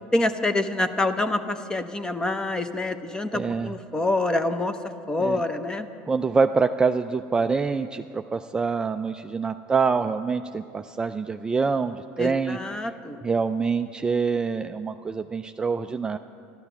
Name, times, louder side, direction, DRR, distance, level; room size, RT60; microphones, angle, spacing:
voice 1, 0.1-4.8 5.1-5.9 12.2-13.2, left 2 dB, 15° left, 10 dB, 0.8 m, -26 dB
voice 2, 3.3-3.7 5.2-5.4 6.1-12.6 13.2-16.2, right 5 dB, 15° right, 7 dB, 0.3 m, -25 dB
13.0 x 12.0 x 7.0 m, 2.7 s
supercardioid pair, 120°, 5 cm